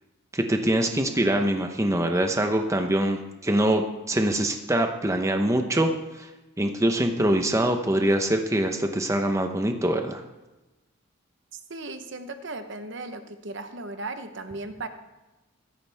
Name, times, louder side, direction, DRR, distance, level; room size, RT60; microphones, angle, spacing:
voice 1, 0.3-3.8 4.1-5.9 6.2-6.3 6.6-10.2, right 1 dB, 15° right, 5 dB, 0.8 m, -24 dB
voice 2, 11.5-14.9, right 2 dB, 55° right, 8 dB, 1.0 m, -36 dB
15.5 x 13.5 x 3.5 m, 1.1 s
head